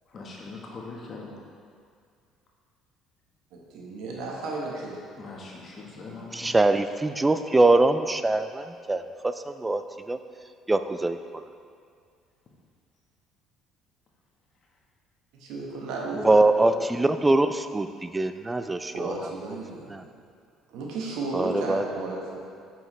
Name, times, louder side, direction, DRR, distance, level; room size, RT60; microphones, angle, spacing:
voice 1, 0.1-1.4 5.2-6.5, left 3 dB, 45° left, -2 dB, 1.2 m, -41 dB
voice 2, 3.7-5.0 15.3-16.9 18.9-20.1 20.7-22.4, right 2 dB, 75° right, -2 dB, 1.3 m, -34 dB
voice 3, 6.3-9.8 10.1-10.2 10.7-11.4 16.2-19.2 19.9-20.0 21.3-21.8, right 2 dB, 15° right, 10 dB, 0.3 m, -23 dB
7.1 x 5.8 x 3.2 m, 2.2 s
supercardioid pair, 80°, 0 cm